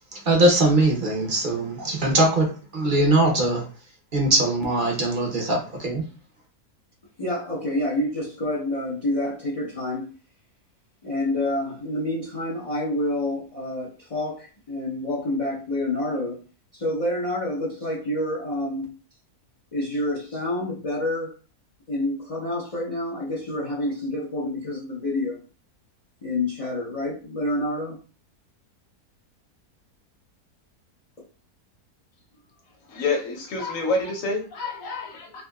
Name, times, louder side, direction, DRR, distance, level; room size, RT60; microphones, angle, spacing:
voice 1, 0.1-3.7 4.1-6.0, right 1 dB, 40° right, 1 dB, 0.8 m, -21 dB
voice 2, 7.2-10.1 11.0-16.4 16.7-18.9 19.7-21.4 21.9-25.4 26.2-28.0, left 1 dB, 40° left, -7 dB, 0.5 m, -28 dB
voice 3, 32.9-35.5, left 3 dB, 60° left, 2 dB, 1.2 m, -28 dB
3.4 x 2.7 x 2.3 m, 0.36 s
omnidirectional pair, 1.6 m